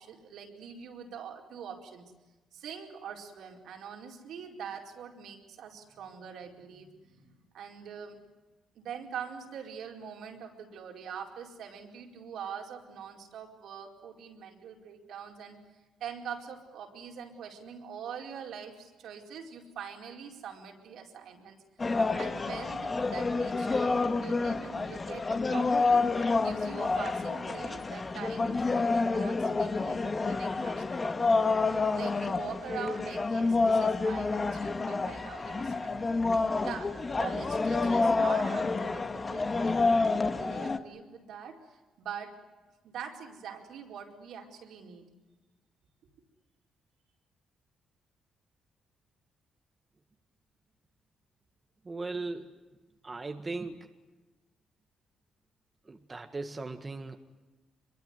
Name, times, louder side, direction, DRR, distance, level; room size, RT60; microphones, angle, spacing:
voice 1, 0.0-2.1 2.5-8.2 8.7-15.6 16.0-21.6 22.1-26.1 26.4-39.8 40.2-42.4 42.8-45.1, right 7 dB, 75° right, 2 dB, 4.7 m, -44 dB
sound 1, 21.8-40.8, left 3 dB, 30° left, 1.8 m, -28 dB
voice 2, 51.8-52.6 53.0-53.9 55.9-57.2, right 3 dB, 25° right, 6 dB, 1.7 m, -38 dB
24.5 x 23.0 x 9.7 m, 1.2 s
cardioid pair, 90°, 0 cm